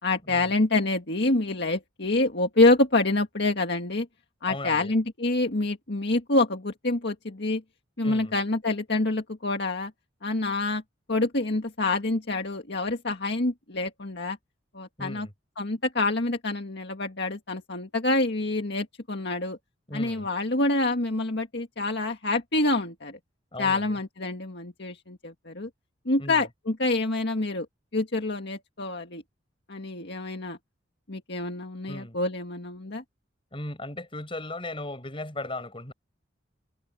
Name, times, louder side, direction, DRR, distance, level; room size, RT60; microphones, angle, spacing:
voice 1, 0.0-4.1 4.4-7.6 8.0-9.9 10.2-10.8 11.1-14.4 14.7-15.3 15.6-19.6 19.9-23.2 23.6-25.7 26.1-27.7 27.9-29.2 29.7-30.6 31.1-33.0, left 2 dB, 60° left, 1.9 m, -26 dB
voice 2, 4.5-4.9 8.0-8.4 15.0-15.3 19.9-20.3 23.5-24.0 26.2-26.5 31.9-32.2 33.5-35.9, left 2 dB, 25° left, 7.2 m, -37 dB
head